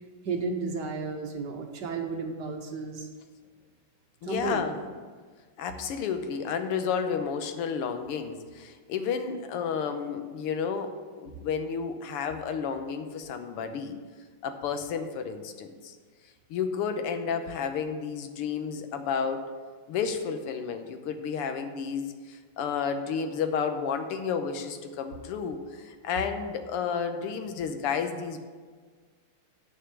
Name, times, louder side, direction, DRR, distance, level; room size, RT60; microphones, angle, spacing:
voice 1, 0.2-3.1 4.2-4.6, right 4 dB, 60° right, 3 dB, 1.3 m, -33 dB
voice 2, 4.2-4.8 5.6-10.9 11.2-14.0 14.4-16.0 16.5-19.5 19.9-28.4, left 6 dB, 85° left, 7 dB, 1.8 m, -31 dB
10.0 x 5.5 x 7.1 m, 1.5 s
omnidirectional pair, 2.4 m